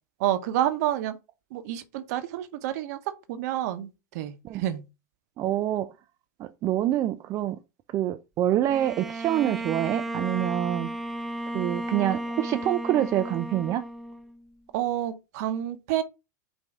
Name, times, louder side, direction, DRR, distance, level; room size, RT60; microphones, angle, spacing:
voice 1, 0.2-1.1 1.5-3.0 3.3-4.8 14.7-16.0, right 12 dB, 60° right, 0.8 m, -28 dB
voice 2, 5.4-5.9 6.4-7.6 7.9-10.9 11.5-13.8, right 12 dB, 35° right, 0.4 m, -26 dB
Bowed string instrument, 8.7-14.5, right 1 dB, ahead, 0.7 m, -34 dB
5.3 x 2.7 x 3.5 m
hypercardioid pair, 110°, 10 cm